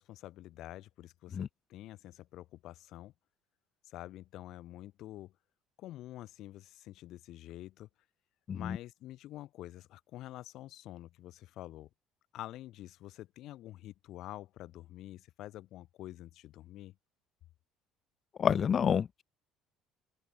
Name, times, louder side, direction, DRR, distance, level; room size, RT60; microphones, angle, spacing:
voice 1, 0.0-3.1 3.9-5.3 5.8-7.9 8.5-11.9 12.3-17.0, left 15 dB, 60° left, 2.0 m, -47 dB
voice 2, 18.4-19.2, left 7 dB, 40° left, 0.3 m, -29 dB
open air
figure-of-eight pair, 55°, 0 cm